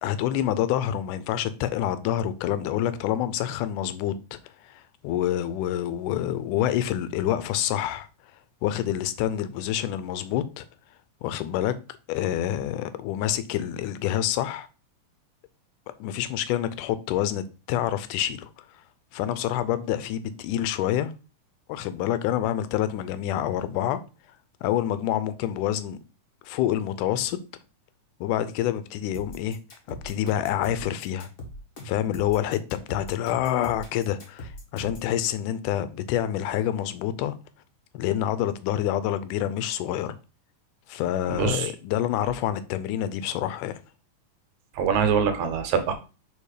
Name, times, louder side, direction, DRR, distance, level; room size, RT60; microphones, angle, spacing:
voice 1, 0.0-4.4 4.6-8.1 8.6-10.7 11.2-11.7 12.1-14.7 16.0-18.6 19.1-21.1 21.7-24.0 24.6-26.0 26.4-27.4 28.2-29.6 29.9-31.3 31.8-32.6 32.9-37.3 37.9-40.2 40.9-43.8, left 11 dB, 90° left, 2.2 m, -27 dB
sound 1, 29.1-35.1, left 1 dB, 40° left, 1.2 m, -41 dB
voice 2, 41.3-41.7 44.8-45.9, right 7 dB, 75° right, 2.2 m, -24 dB
5.4 x 4.3 x 4.9 m
omnidirectional pair, 3.6 m